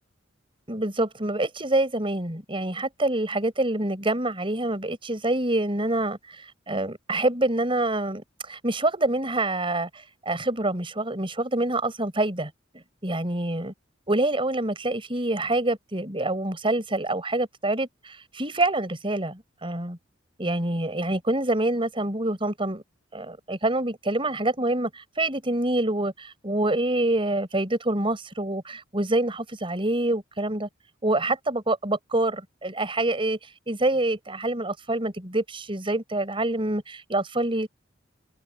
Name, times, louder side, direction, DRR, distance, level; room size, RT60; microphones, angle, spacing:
voice 1, 0.7-13.7 14.1-20.0 20.4-22.8 23.1-30.7 31.0-33.4 33.7-37.7, right 2 dB, 25° right, 6.1 m, -26 dB
head